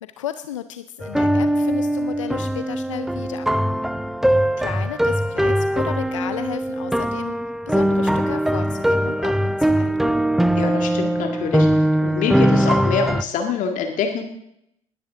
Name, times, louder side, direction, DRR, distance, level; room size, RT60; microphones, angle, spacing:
voice 1, 0.2-3.5 4.6-10.1, left 11 dB, 85° left, 12 dB, 0.5 m, -34 dB
sound 1, 1.0-13.2, equal, ahead, 0.6 m, -21 dB
voice 2, 10.6-11.7 12.0-14.3, left 6 dB, 55° left, 4 dB, 1.8 m, -25 dB
20.0 x 10.5 x 3.7 m, 0.77 s
hypercardioid pair, 60°, 16 cm